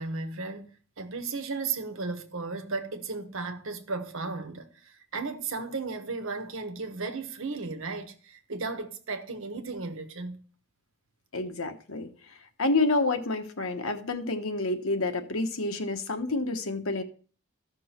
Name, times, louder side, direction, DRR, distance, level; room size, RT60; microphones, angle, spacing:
voice 1, 0.0-10.4, right 4 dB, 65° right, 1.2 m, -35 dB
voice 2, 11.3-12.1 12.6-17.0, left 2 dB, 75° left, 1.2 m, -28 dB
14.5 x 6.2 x 4.4 m
head